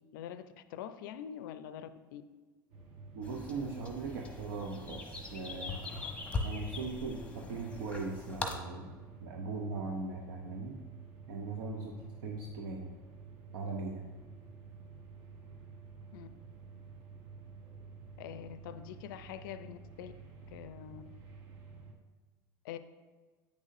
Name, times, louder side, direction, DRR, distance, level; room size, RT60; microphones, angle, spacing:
voice 1, 0.1-2.2 16.1-16.3 18.2-20.1 20.5-21.0 22.6-22.8, left 10 dB, 70° left, 12 dB, 0.4 m, -44 dB
sound 1, 2.7-21.9, right 5 dB, 50° right, 1.2 m, -51 dB
voice 2, 3.1-5.8 6.4-10.8 11.3-11.9 12.2-12.9 13.5-14.1, right 3 dB, 70° right, 0 dB, 0.7 m, -39 dB
sound 2, 3.2-8.6, left 3 dB, 10° left, 0.9 m, -41 dB
8.4 x 6.2 x 2.6 m, 1.4 s
hypercardioid pair, 80°, 12 cm